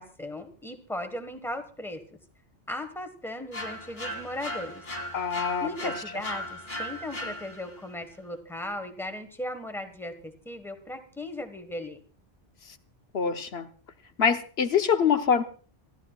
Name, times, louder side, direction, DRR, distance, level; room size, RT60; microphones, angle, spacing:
voice 1, 0.0-2.0 2.7-4.8 5.6-12.0, left 1 dB, ahead, 1.4 m, -37 dB
sound 1, 3.5-7.9, left 1 dB, 35° left, 1.9 m, -37 dB
voice 2, 5.1-5.7 13.1-13.7 14.2-15.4, left 7 dB, 80° left, 1.2 m, -24 dB
27.0 x 12.5 x 2.4 m
omnidirectional pair, 1.1 m